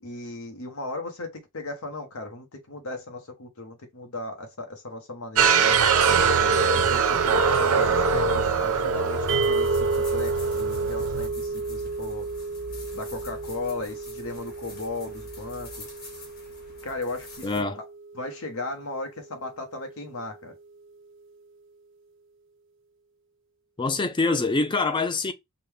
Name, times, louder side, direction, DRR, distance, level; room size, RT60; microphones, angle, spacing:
voice 1, 0.0-5.8 6.4-12.3 12.9-15.9 16.8-17.8 18.1-20.5, left 2 dB, 75° left, 1.0 m, -36 dB
sound 1, 5.3-11.3, right 5 dB, 85° right, 0.7 m, -22 dB
sound 2, 9.3-17.6, equal, 45° left, 1.8 m, -44 dB
sound 3, 9.3-19.6, right 3 dB, 55° right, 0.4 m, -32 dB
voice 2, 17.4-17.8 23.8-25.3, left 3 dB, 20° left, 0.4 m, -25 dB
5.2 x 2.2 x 3.3 m
head